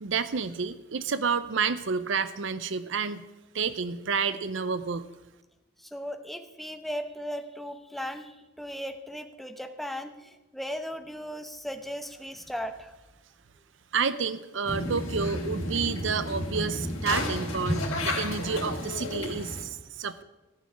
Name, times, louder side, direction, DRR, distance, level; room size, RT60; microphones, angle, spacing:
voice 1, 0.0-3.2 3.5-5.1 13.9-20.2, right 5 dB, 65° right, 14 dB, 0.6 m, -30 dB
voice 2, 5.8-12.9, equal, ahead, 6 dB, 0.9 m, -37 dB
sound 1, 14.6-19.6, left 1 dB, 90° left, 2.9 m, -31 dB
14.0 x 6.3 x 9.7 m, 1.0 s
head